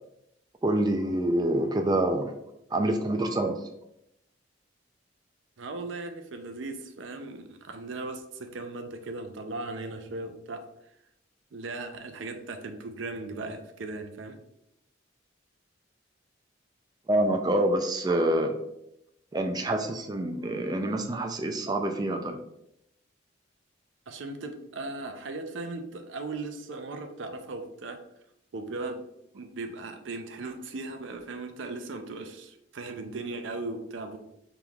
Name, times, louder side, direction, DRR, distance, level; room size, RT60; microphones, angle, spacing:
voice 1, 0.6-2.3 2.7-3.6 17.1-18.5 19.3-22.4, right 1 dB, 20° right, 5 dB, 0.3 m, -26 dB
voice 2, 5.6-10.6 11.5-14.4 24.1-28.0 28.5-29.0 29.3-34.2, right 3 dB, 80° right, 6 dB, 0.5 m, -37 dB
5.2 x 3.0 x 2.3 m, 0.80 s
head